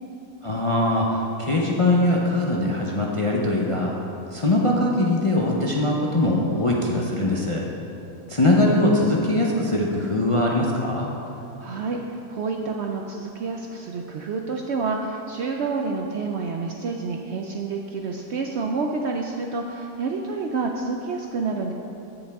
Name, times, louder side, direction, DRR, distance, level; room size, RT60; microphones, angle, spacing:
voice 1, 0.4-3.9 4.3-7.6 8.3-11.1, left 1 dB, 40° left, -3 dB, 0.4 m, -21 dB
voice 2, 11.6-21.7, right 4 dB, 70° right, 2 dB, 0.6 m, -28 dB
15.0 x 5.3 x 3.5 m, 2.8 s
omnidirectional pair, 1.6 m